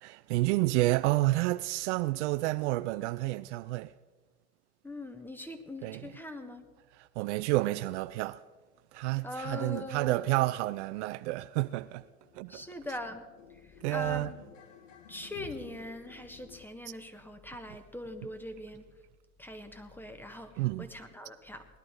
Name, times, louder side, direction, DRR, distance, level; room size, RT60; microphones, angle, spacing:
voice 1, 0.0-3.9 5.8-6.1 6.9-8.4 8.9-12.0 12.3-13.0 13.8-14.3 20.6-20.9, right 18 dB, 60° right, 0.5 m, -30 dB
voice 2, 4.8-6.6 9.2-10.3 12.5-13.2 13.5-14.3 15.1-18.9 19.4-21.7, left 1 dB, 5° left, 1.4 m, -42 dB
sound 1, 10.6-16.7, left 9 dB, 70° left, 1.2 m, -53 dB
18.5 x 11.5 x 4.7 m
hypercardioid pair, 85°, 40 cm